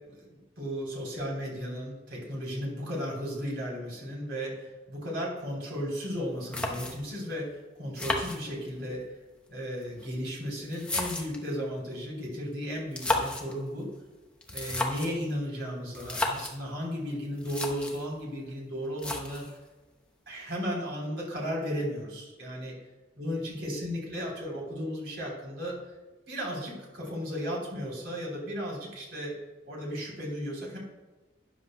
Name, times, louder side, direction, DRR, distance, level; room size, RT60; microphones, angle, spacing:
voice 1, 0.1-9.2 9.5-13.9 14.5-19.4 20.3-22.7 23.2-25.8 26.3-29.3 29.7-30.8, equal, 60° right, -2 dB, 3.4 m, -35 dB
sound 1, 6.1-6.2 6.5-7.2 8.0-8.9 9.8-11.5 12.8-13.5 14.4-15.2 15.9-16.6 17.1-17.2 17.4-18.1 19.0-19.6, left 2 dB, 5° left, 0.8 m, -33 dB
13.0 x 9.6 x 2.2 m, 1.1 s
head